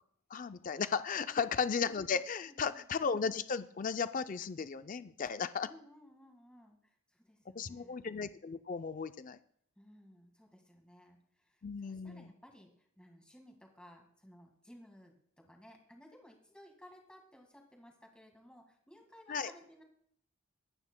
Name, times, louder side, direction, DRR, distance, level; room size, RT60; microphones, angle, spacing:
voice 1, 0.3-5.7 7.6-9.4 11.6-12.3 19.3-19.5, left 5 dB, 40° left, 12 dB, 0.4 m, -35 dB
voice 2, 2.5-2.9 5.6-8.1 9.8-19.8, equal, 5° left, 2 dB, 1.7 m, -58 dB
23.5 x 9.7 x 2.2 m, 0.66 s
head